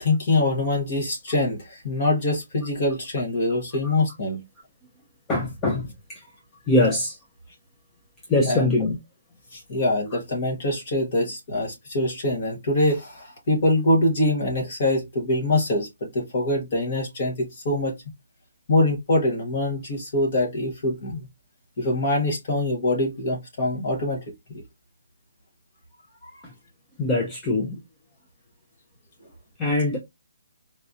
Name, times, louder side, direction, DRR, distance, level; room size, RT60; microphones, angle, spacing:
voice 1, 0.0-4.4 8.5-8.8 9.5-17.9 18.7-21.3 21.8-24.2 26.2-26.3, left 2 dB, 30° left, 1.0 m, -24 dB
voice 2, 5.3-6.2 6.7-7.2 8.3-9.0 26.4-26.5 27.0-27.8 29.6-30.0, left 2 dB, 10° left, 0.4 m, -23 dB
3.9 x 2.7 x 2.3 m
hypercardioid pair, 180°, 0 cm